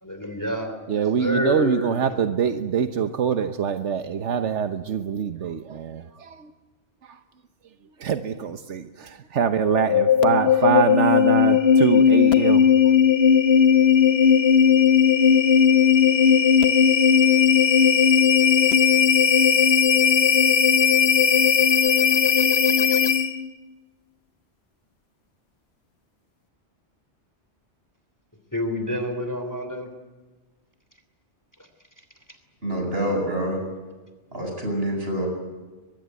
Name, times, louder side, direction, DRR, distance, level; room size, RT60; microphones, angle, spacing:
voice 1, 0.0-2.1 28.5-29.9 31.6-31.7 32.0-32.1, left 1 dB, 15° left, 7 dB, 3.2 m, -29 dB
voice 2, 0.9-6.5 7.0-7.2 8.0-12.9, right 7 dB, 85° right, 9 dB, 1.3 m, -24 dB
sound 1, 9.6-23.5, left 7 dB, 65° left, 1.3 m, -17 dB
voice 3, 32.6-33.6 34.3-35.3, right 1 dB, 55° right, 2 dB, 8.0 m, -26 dB
23.0 x 22.5 x 9.4 m, 1.3 s
omnidirectional pair, 1.2 m